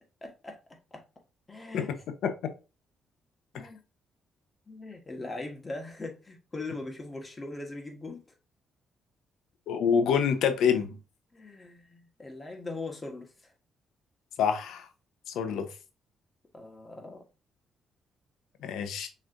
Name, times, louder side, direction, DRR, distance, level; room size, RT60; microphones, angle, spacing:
voice 1, 0.2-0.6 0.9-1.0 1.5-1.9 3.5-3.8 4.7-8.2 11.3-13.5 16.5-17.2, left 2 dB, 25° left, 1.4 m, -40 dB
voice 2, 9.7-10.9 14.4-14.9 15.3-15.7 18.6-19.1, left 7 dB, 80° left, 0.8 m, -26 dB
6.1 x 3.2 x 2.6 m
cardioid pair, 90°, 0 cm